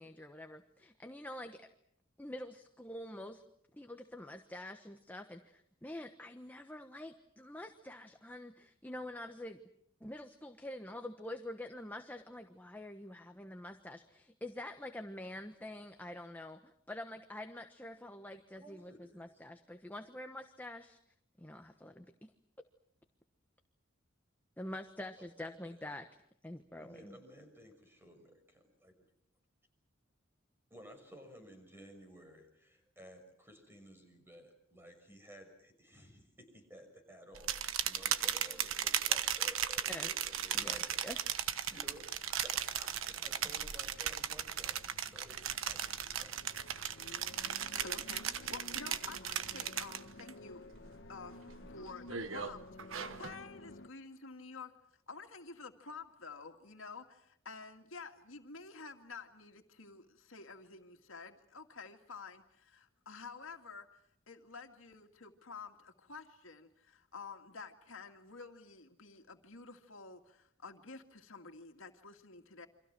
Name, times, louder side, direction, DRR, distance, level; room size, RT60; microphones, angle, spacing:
voice 1, 0.0-1.7 2.2-3.4 3.7-9.6 10.0-21.0 21.4-22.3 24.6-26.1 26.4-27.2 39.9-40.1 40.5-41.2, left 1 dB, 10° left, 5 dB, 1.2 m, -46 dB
voice 2, 18.6-19.3 24.7-24.8 25.2-25.8 26.8-28.9 30.7-41.0 41.7-46.4, equal, 10° right, 5 dB, 6.2 m, -55 dB
sound 1, 37.3-50.3 50.7-51.1 51.5-53.4, right 9 dB, 90° right, 1.3 m, -37 dB
sound 2, 39.7-53.9, left 2 dB, 60° left, 1.3 m, -55 dB
voice 3, 47.7-50.6 51.1-51.4 51.7-54.7 55.1-64.0 64.3-72.7, left 4 dB, 80° left, 5 dB, 2.3 m, -50 dB
29.0 x 25.5 x 6.1 m, 0.70 s
head